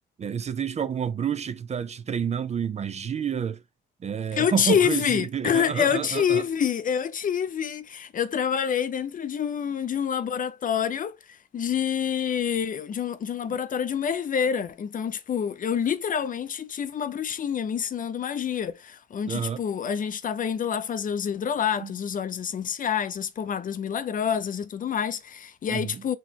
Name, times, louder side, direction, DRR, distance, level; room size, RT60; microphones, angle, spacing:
voice 1, 0.2-3.6 4.0-6.5 19.3-19.6 21.8-21.9 25.7-26.0, right 7 dB, 35° right, 0.4 m, -29 dB
voice 2, 4.3-26.2, left 8 dB, 45° left, 0.5 m, -27 dB
4.2 x 3.1 x 2.8 m
cardioid pair, 90°, 20 cm